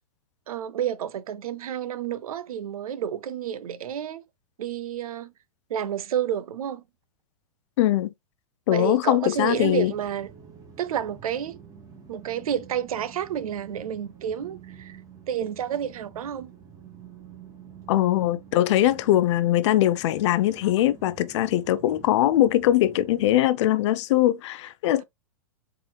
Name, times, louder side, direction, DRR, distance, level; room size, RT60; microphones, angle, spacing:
voice 1, 0.5-4.2 4.6-5.3 5.7-6.8 8.7-10.3 10.8-11.6 12.1-15.0 15.3-16.5, right 9 dB, 85° right, 0.5 m, -30 dB
voice 2, 7.8-8.1 8.7-9.9 17.9-25.0, left 13 dB, 55° left, 0.5 m, -21 dB
sound 1, 9.3-23.4, right 7 dB, 20° right, 1.2 m, -48 dB
4.4 x 3.8 x 2.2 m
hypercardioid pair, 140°, 18 cm